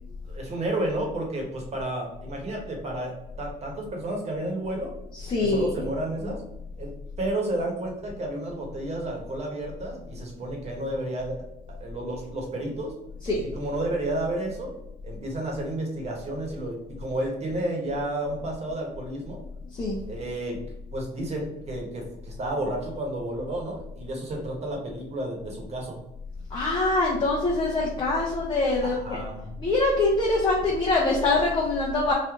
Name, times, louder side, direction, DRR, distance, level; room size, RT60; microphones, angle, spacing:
voice 1, 0.2-4.9 5.4-6.4 6.8-6.9 7.2-11.4 11.7-12.9 13.4-14.7 15.0-19.4 20.1-20.6 20.9-26.0 28.8-29.6, right 1 dB, 40° right, 0 dB, 1.3 m, -31 dB
voice 2, 5.2-5.9 13.2-13.4 19.8-20.0 26.5-29.2 29.6-32.1, left 2 dB, 30° left, -2 dB, 0.7 m, -24 dB
3.2 x 2.6 x 3.7 m, 0.87 s
cardioid pair, 110°, 17 cm